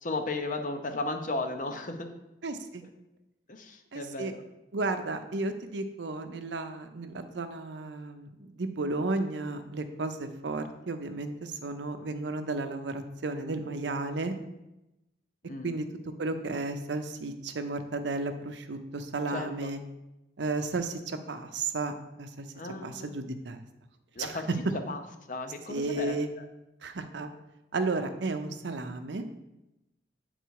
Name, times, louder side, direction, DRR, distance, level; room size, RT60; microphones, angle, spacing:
voice 1, 0.0-2.1 3.5-4.4 15.5-15.7 19.3-19.7 22.5-23.1 24.2-24.5 24.9-25.0 25.3-26.1, left 2 dB, 45° left, 6 dB, 0.7 m, -35 dB
voice 2, 2.4-2.8 3.9-4.3 4.7-14.3 15.6-15.9 16.2-19.8 20.4-22.5 22.8-23.6 24.2-24.4 25.7-26.3 26.8-27.3 27.7-29.2, right 3 dB, 80° right, 8 dB, 0.6 m, -33 dB
8.0 x 4.0 x 4.7 m, 0.94 s
head